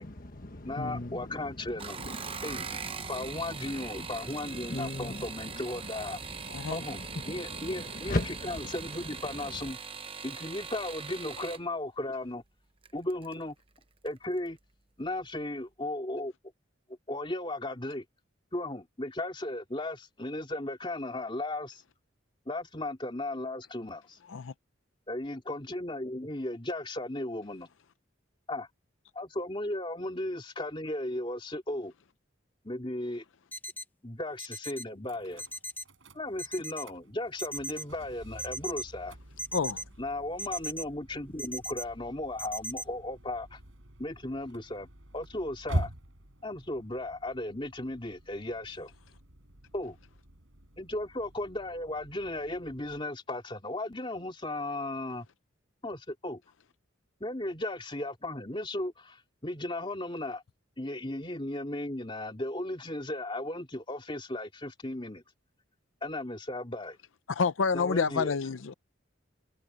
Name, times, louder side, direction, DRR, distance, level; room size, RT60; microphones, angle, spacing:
voice 1, 0.0-9.7, left 2 dB, 45° left, 1.4 m, -39 dB
voice 2, 0.6-2.0 2.4-2.7 3.1-6.2 6.7-7.0 7.3-8.2 8.4-9.8 10.2-12.4 12.9-13.6 14.0-14.6 15.0-16.3 17.1-18.0 18.5-21.8 22.5-24.2 25.1-27.7 28.5-28.7 29.1-31.9 32.6-33.2 34.0-35.4 36.1-39.2 40.0-43.6 44.0-44.9 45.1-45.9 46.4-48.9 49.7-50.0 50.8-55.3 55.8-56.4 57.2-60.4 60.8-65.2 66.0-67.0 67.7-68.4, left 1 dB, 25° left, 2.8 m, -36 dB
sound 1, 1.7-11.6 12.8-13.3 13.8-14.2 14.5-14.6, right 6 dB, 25° right, 0.8 m, -41 dB
voice 3, 6.5-6.8 24.3-24.5 39.5-39.8 67.3-68.7, left 5 dB, 80° left, 0.5 m, -28 dB
sound 2, 33.5-33.8 34.4-34.8 35.4-35.8 36.4-36.8 37.4-37.8 38.4-38.8 39.4-39.8 40.4-40.8 41.4-41.8 42.4-42.8, equal, 10° left, 1.3 m, -37 dB
sound 3, 35.0-53.0, right 1 dB, 85° right, 4.4 m, -44 dB
head